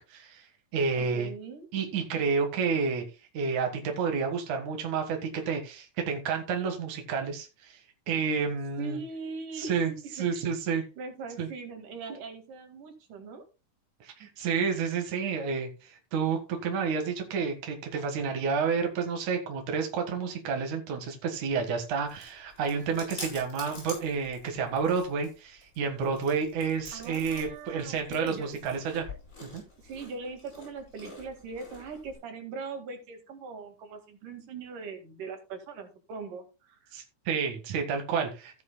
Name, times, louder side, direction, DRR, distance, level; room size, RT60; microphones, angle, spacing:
voice 1, 0.1-1.3 1.7-3.0 3.3-9.0 9.6-10.8 11.4-11.5 14.0-29.1 29.4-29.6 36.9-38.6, right 5 dB, 70° right, 4 dB, 3.0 m, -30 dB
voice 2, 1.0-1.7 8.8-9.8 10.0-10.5 10.7-13.4 26.9-28.6 29.8-36.9, right 4 dB, 85° right, 5 dB, 3.6 m, -41 dB
Chewing mastication, 21.5-32.2, left 2 dB, 25° left, 8.4 m, -47 dB
15.0 x 10.5 x 2.2 m, 0.29 s
omnidirectional pair, 3.6 m